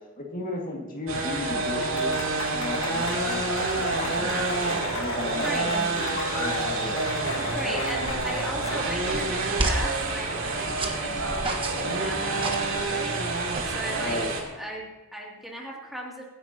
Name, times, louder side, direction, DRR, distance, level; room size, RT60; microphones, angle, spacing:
voice 1, 0.2-3.4 3.9-7.1 7.6-7.9 14.0-14.3, left 2 dB, 40° left, 0 dB, 2.1 m, -35 dB
sound 1, 1.1-14.4, right 3 dB, 65° right, 2.9 m, -28 dB
Applause / Crowd, 1.3-9.4, left 3 dB, 65° left, 2.0 m, -35 dB
voice 2, 5.4-5.7 7.5-14.2 14.6-16.3, equal, ahead, -3 dB, 2.7 m, -37 dB
sound 2, 8.1-14.3, right 2 dB, 25° right, 1.4 m, -34 dB
23.5 x 10.0 x 2.9 m, 1.2 s
head